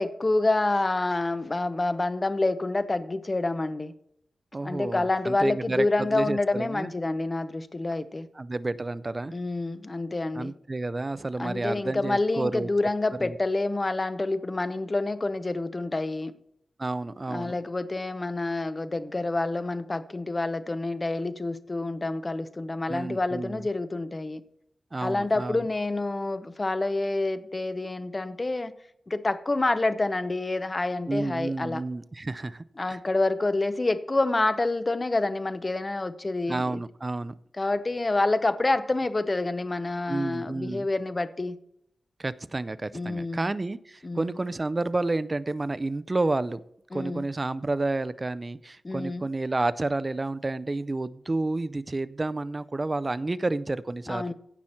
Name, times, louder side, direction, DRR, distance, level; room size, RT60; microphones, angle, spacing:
voice 1, 0.0-3.9 4.6-8.3 9.3-10.5 11.4-16.3 17.3-24.4 25.0-28.7 29.1-31.8 32.8-36.8 37.6-41.6 42.9-43.5 44.0-44.3 46.9-47.2 48.8-49.3 54.1-54.3, left 2 dB, 25° left, 0.6 m, -28 dB
voice 2, 4.5-6.9 8.4-9.3 10.3-12.7 13.2-13.4 16.8-17.6 22.9-23.7 24.9-25.6 31.1-33.0 36.5-37.4 40.1-40.9 42.2-46.6 46.9-54.3, right 2 dB, 25° right, 0.4 m, -30 dB
16.0 x 5.8 x 4.4 m
wide cardioid pair, 160°, 0 cm